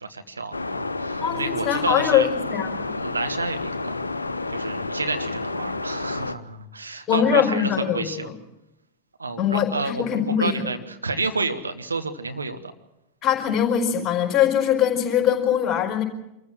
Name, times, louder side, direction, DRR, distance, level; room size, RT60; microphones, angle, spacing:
voice 1, 0.0-2.3 2.9-4.0 4.5-8.3 9.2-12.7, right 3 dB, 80° right, 8 dB, 1.3 m, -30 dB
sound 1, 0.5-6.3, left 3 dB, 80° left, 0.8 m, -30 dB
voice 2, 1.2-2.9 7.1-8.3 9.4-10.5 13.2-16.0, left 9 dB, 25° left, 2 dB, 5.0 m, -22 dB
26.0 x 14.5 x 7.6 m, 0.88 s
figure-of-eight pair, 90°, 0 cm